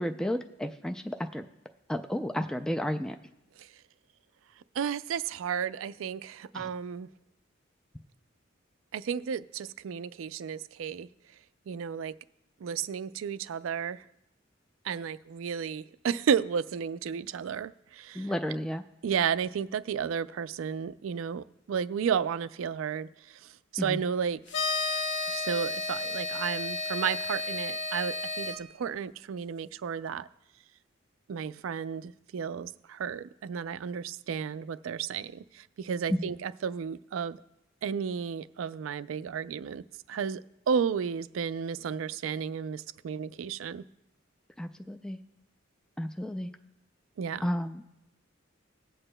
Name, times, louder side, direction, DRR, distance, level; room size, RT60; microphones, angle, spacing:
voice 1, 0.0-1.4 1.9-3.2 6.5-6.7 18.2-18.8 23.8-24.0 36.1-36.3 44.6-45.2 46.0-46.5 47.4-47.8, equal, 5° left, 0.3 m, -32 dB
voice 2, 4.8-7.1 8.9-11.1 11.7-12.1 12.6-14.0 14.8-18.3 19.0-24.4 25.3-30.3 31.3-37.4 37.8-40.4 40.7-43.8 47.2-47.5, right 7 dB, 90° right, 0.4 m, -33 dB
sound 1, 24.5-28.6, left 3 dB, 65° left, 0.8 m, -32 dB
20.5 x 7.9 x 2.2 m
head